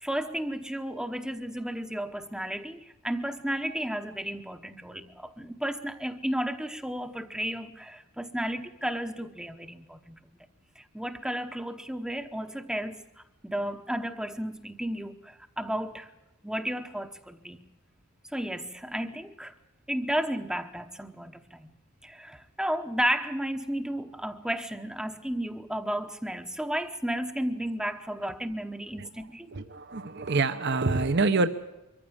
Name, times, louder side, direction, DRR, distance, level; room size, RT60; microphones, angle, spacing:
voice 1, 0.0-10.2 10.8-13.0 13.4-16.1 16.4-17.6 18.3-19.5 19.9-21.7 22.0-29.5, right 1 dB, 5° right, 6 dB, 0.9 m, -33 dB
voice 2, 29.5-31.5, right 3 dB, 50° right, 9 dB, 0.9 m, -26 dB
23.5 x 15.0 x 8.8 m, 1.0 s
head